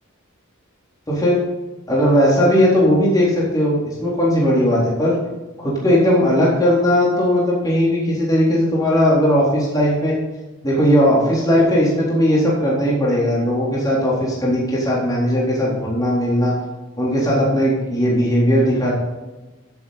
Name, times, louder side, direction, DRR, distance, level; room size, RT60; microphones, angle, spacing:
voice 1, 1.1-1.4 1.9-5.2 5.6-10.1 10.6-16.5 17.0-18.9, equal, 15° left, -6 dB, 3.9 m, -17 dB
15.0 x 8.2 x 4.3 m, 1.2 s
head